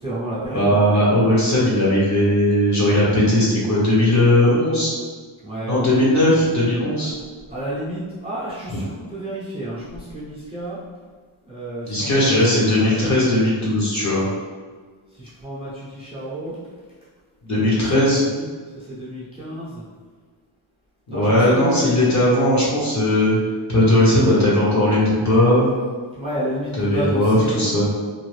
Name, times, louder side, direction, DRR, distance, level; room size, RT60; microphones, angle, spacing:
voice 1, 0.0-1.0 5.4-5.9 7.0-7.1 7.5-10.8 11.4-12.4 12.7-13.2 15.2-16.6 17.5-18.0 18.2-18.5 18.7-19.8 21.1-21.9 24.1-24.4 26.1-27.6, right 1 dB, 10° right, -10 dB, 0.7 m, -30 dB
voice 2, 0.5-4.9 5.7-7.1 11.8-14.3 17.4-18.2 21.1-23.4 23.7-25.7 26.8-27.8, left 1 dB, 35° left, -7 dB, 1.1 m, -18 dB
2.7 x 2.5 x 3.2 m, 1.5 s
wide cardioid pair, 130°, 49 cm